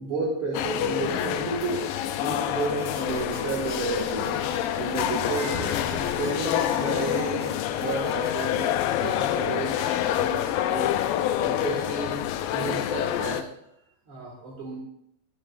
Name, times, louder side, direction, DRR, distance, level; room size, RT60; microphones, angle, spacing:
voice 1, 0.0-9.8 10.2-10.9 11.4-12.2 12.5-13.4 14.1-14.8, right 4 dB, 45° right, -4 dB, 2.1 m, -32 dB
sound 1, 0.5-13.4, left 12 dB, 85° left, 2.1 m, -27 dB
sound 2, 2.6-8.3, right 8 dB, 80° right, 1.3 m, -41 dB
Crying sobbing, 4.4-6.9 9.1-10.5, left 3 dB, 45° left, 1.0 m, -43 dB
20.5 x 7.6 x 2.5 m, 0.76 s
omnidirectional pair, 4.4 m